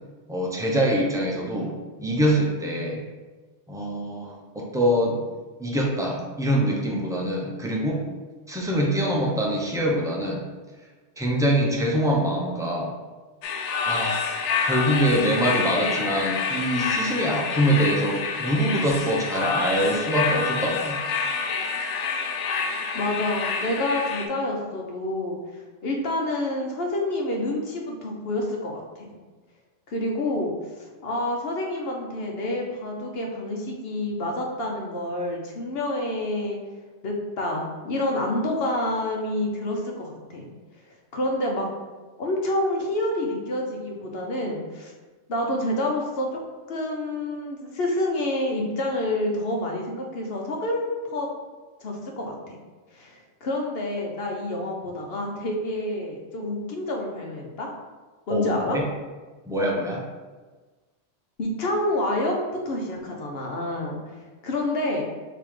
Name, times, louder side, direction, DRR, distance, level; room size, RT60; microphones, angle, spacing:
voice 1, 0.3-1.7 2.0-3.0 3.7-5.2 5.6-8.0 8.5-10.4 11.2-12.9 13.9-14.2 14.6-21.0 58.3-58.8 59.5-60.0, equal, 5° right, -3 dB, 0.5 m, -24 dB
sound 1, 13.4-24.3, left 5 dB, 90° left, 0.9 m, -27 dB
voice 2, 22.9-25.4 25.8-29.1 29.9-36.6 37.0-40.5 41.1-41.7 42.2-44.9 45.3-46.4 46.7-51.3 51.8-52.6 52.9-57.7 58.3-58.8 61.4-62.3 62.6-64.0 64.4-65.1, left 1 dB, 60° left, 0 dB, 1.0 m, -28 dB
3.6 x 2.9 x 4.7 m, 1.3 s
omnidirectional pair, 1.2 m